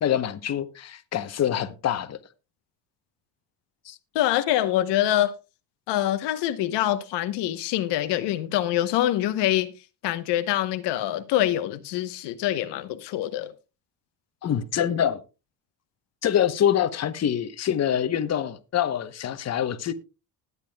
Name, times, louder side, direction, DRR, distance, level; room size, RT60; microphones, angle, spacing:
voice 1, 0.0-2.2 3.9-4.0 14.4-15.2 16.2-19.9, left 10 dB, 40° left, 1.0 m, -25 dB
voice 2, 4.1-5.3 5.9-9.7 10.0-13.5, left 13 dB, 75° left, 1.0 m, -25 dB
20.0 x 8.3 x 2.3 m
cardioid pair, 110°, 41 cm